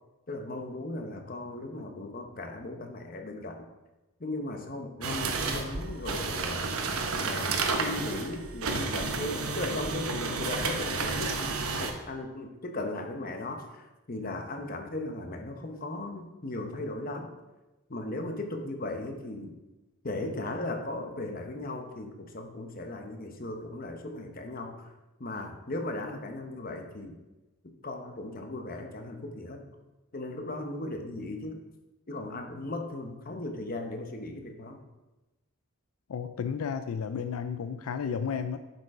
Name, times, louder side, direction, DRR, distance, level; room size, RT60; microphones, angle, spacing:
voice 1, 0.3-3.7 4.2-6.7 7.2-17.3 17.9-19.5 20.0-24.9 25.2-27.2 27.8-29.7 30.1-31.6 32.1-34.8, left 2 dB, 40° left, 4 dB, 0.9 m, -37 dB
sound 1, 5.0-11.9, right 4 dB, 80° right, 1.0 m, -31 dB
voice 2, 36.1-38.6, left 6 dB, 85° left, 10 dB, 0.4 m, -32 dB
7.6 x 5.4 x 4.8 m, 1.1 s
head